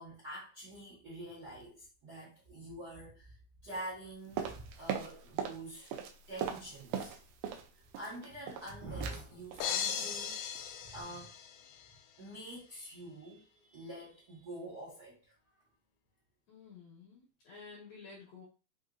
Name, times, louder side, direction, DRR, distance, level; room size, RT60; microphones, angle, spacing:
voice 1, 0.0-3.4 3.6-5.9 6.3-7.1 7.7-10.4 10.8-11.4 12.2-15.3, right 1 dB, 50° right, 1.2 m, -46 dB
sound 1, 4.4-5.6 5.9-7.7 7.9-8.7 9.0-9.2 9.5-9.7 10.0-10.3 10.6-10.7, right 8 dB, 85° right, 1.7 m, -39 dB
sound 2, 9.6-11.9, left 8 dB, 80° left, 2.0 m, -37 dB
voice 2, 16.5-18.4, left 4 dB, 65° left, 1.8 m, -52 dB
5.5 x 2.7 x 2.5 m
omnidirectional pair, 4.2 m